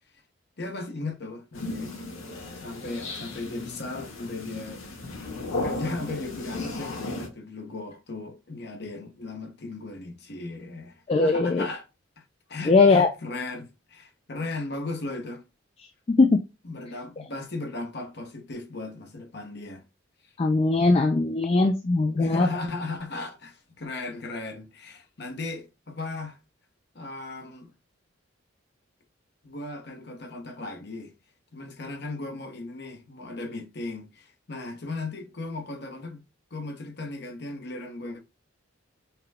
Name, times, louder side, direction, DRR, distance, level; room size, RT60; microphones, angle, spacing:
voice 1, 0.6-2.0 2.5-5.2 5.6-11.9 12.2-12.3 12.5-15.4 16.6-19.8 22.1-26.4 26.9-27.7 29.4-31.1 31.5-36.2 36.5-38.2, left 3 dB, 55° left, 0.9 m, -36 dB
sound 1, 1.5-7.3, left 2 dB, 90° left, 1.5 m, -35 dB
voice 2, 11.1-11.7 12.7-13.1 16.1-16.4 20.4-22.5, left 3 dB, 30° left, 0.3 m, -20 dB
5.7 x 2.2 x 3.4 m
head